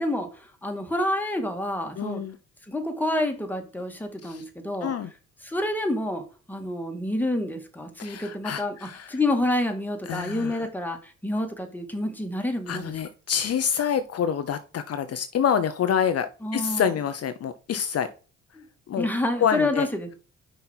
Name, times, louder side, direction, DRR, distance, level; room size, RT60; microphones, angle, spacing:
voice 1, 0.0-2.2 2.7-4.9 5.4-6.2 6.5-12.9 16.4-16.9 18.5-18.7 19.0-20.2, left 1 dB, 5° left, 2.1 m, -28 dB
voice 2, 2.0-2.4 4.2-4.4 4.8-5.1 8.0-9.2 10.1-10.7 12.7-18.1 18.9-19.1 19.4-19.9, left 8 dB, 55° left, 0.7 m, -27 dB
5.7 x 5.1 x 4.5 m
cardioid pair, 90°, 30 cm